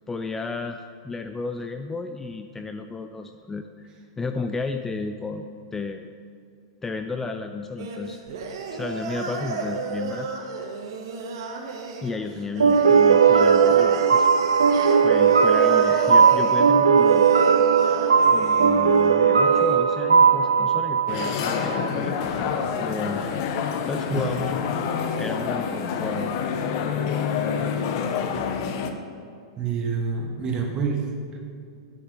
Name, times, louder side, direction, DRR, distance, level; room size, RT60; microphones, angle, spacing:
voice 1, 0.1-3.9 4.2-5.5 5.7-6.1 6.8-8.2 8.7-10.3 12.0-14.7 15.0-17.3 18.3-22.1 22.5-23.3 23.9-24.5 25.2-26.4, left 4 dB, 15° left, 6 dB, 0.4 m, -33 dB
sound 1, 7.8-19.7, right 4 dB, 65° right, 1.3 m, -32 dB
sound 2, 12.6-21.9, right 6 dB, 90° right, 0.4 m, -18 dB
sound 3, 21.1-28.9, left 6 dB, 55° left, 0.9 m, -27 dB
voice 2, 29.6-31.4, right 5 dB, 30° right, 1 dB, 1.8 m, -27 dB
8.6 x 8.0 x 5.1 m, 2.4 s
hypercardioid pair, 110°, 3 cm